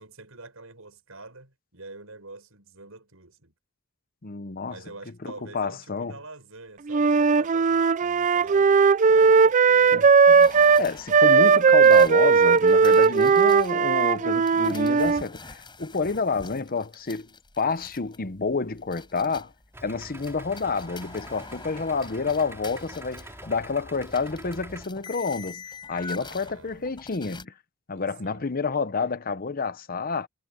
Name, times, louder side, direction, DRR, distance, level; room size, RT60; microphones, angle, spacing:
voice 1, 0.0-3.5 4.7-10.2 26.2-27.1 28.0-28.5, right 3 dB, 80° right, 7.0 m, -46 dB
voice 2, 4.2-4.8 5.2-6.1 9.9-10.5 10.8-17.3 17.6-19.5 19.8-25.6 25.9-27.5 27.9-30.3, left 4 dB, 45° left, 0.9 m, -29 dB
Wind instrument woodwind instrument, 6.9-15.2, right 5 dB, 35° right, 0.4 m, -18 dB
sound 1, 10.4-13.7 14.5-19.6 20.0-27.4, left 4 dB, 25° left, 6.0 m, -44 dB
Idling, 19.7-24.8, right 1 dB, 15° right, 3.7 m, -45 dB
head